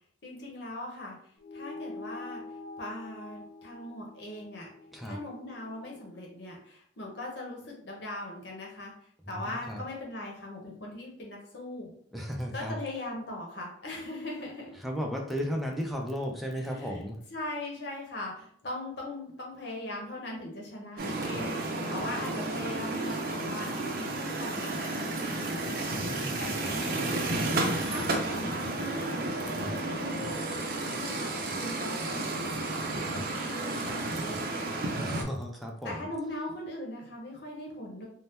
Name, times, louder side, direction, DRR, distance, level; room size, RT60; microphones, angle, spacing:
voice 1, 0.2-2.4 2.7-4.7 5.0-8.9 9.3-11.9 12.5-14.8 16.6-30.4 30.7-31.3 31.6-34.4 35.8-38.1, left 1 dB, 70° left, -1 dB, 0.9 m, -40 dB
sound 1, 1.4-6.2, left 2 dB, 45° left, 1.0 m, -45 dB
voice 2, 9.3-9.8 12.1-12.8 14.8-17.2 25.9-26.9 29.5-29.8 33.0-33.3 35.0-36.1, equal, ahead, 1 dB, 0.5 m, -35 dB
sound 2, 21.0-35.2, right 2 dB, 55° right, 0.5 m, -32 dB
sound 3, 27.7-28.2 30.4-31.0 33.6-34.1 35.4-35.9, right 6 dB, 30° right, 0.9 m, -48 dB
2.7 x 2.1 x 3.4 m, 0.64 s
head